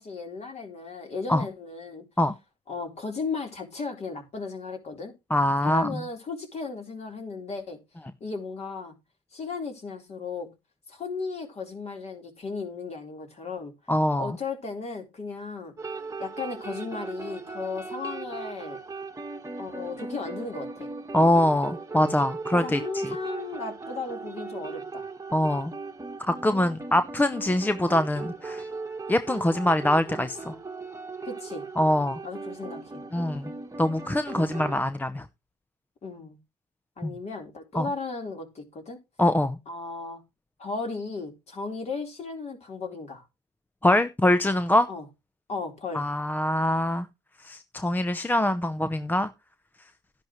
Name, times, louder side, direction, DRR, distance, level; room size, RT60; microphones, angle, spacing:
voice 1, 0.0-2.0 2.7-5.1 5.6-7.8 8.2-8.9 9.3-10.5 10.9-13.7 14.2-15.7 16.2-18.8 19.6-20.9 22.5-25.0 31.2-31.7 32.2-33.0 36.0-36.4 37.0-39.0 39.7-40.2 40.6-43.2 44.9-45.0 45.5-46.1, left 4 dB, 40° left, 3.9 m, -35 dB
voice 2, 5.3-5.9 13.9-14.3 21.1-23.0 25.3-25.7 26.2-28.6 29.1-30.6 31.8-32.2 33.1-33.5 33.8-35.2 37.0-37.1 37.7-37.9 39.2-39.6 43.8-44.9 45.9-47.1 47.4-49.3, left 1 dB, 10° left, 0.7 m, -24 dB
sound 1, 15.8-34.8, right 4 dB, 15° right, 1.5 m, -38 dB
12.0 x 10.5 x 3.1 m
cardioid pair, 110°, 17 cm